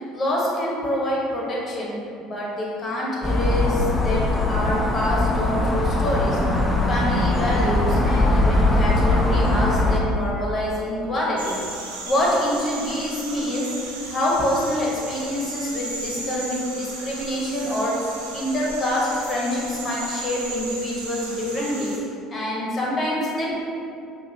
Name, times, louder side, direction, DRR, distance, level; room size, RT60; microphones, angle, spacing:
voice 1, 0.0-1.9 2.2-6.4 6.9-11.6 12.0-13.7 14.0-18.0 18.3-21.9 22.3-23.5, left 1 dB, 35° left, -4 dB, 1.2 m, -26 dB
sound 1, 3.2-10.0, left 2 dB, 15° left, 0.5 m, -21 dB
sound 2, 11.4-22.0, right 2 dB, 85° right, 0.5 m, -35 dB
4.7 x 2.5 x 2.9 m, 2.5 s
hypercardioid pair, 65°, 0 cm